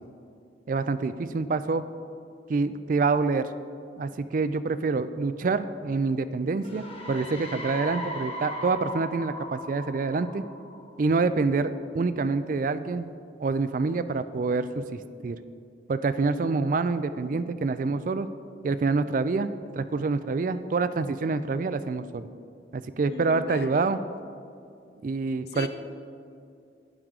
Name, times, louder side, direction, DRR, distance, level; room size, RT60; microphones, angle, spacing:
voice 1, 0.7-1.8 2.5-3.5 4.0-10.5 11.0-13.1 13.4-15.4 15.9-18.3 18.6-22.3 22.7-24.0 25.0-25.7, right 4 dB, 45° right, 13 dB, 0.3 m, -27 dB
sound 1, 6.6-11.2, left 1 dB, 35° left, 1.4 m, -38 dB
voice 2, 16.1-16.5 16.8-16.9 23.1-23.9 25.5-25.7, left 3 dB, 65° left, 8 dB, 0.7 m, -39 dB
11.5 x 9.4 x 3.7 m, 2.5 s
head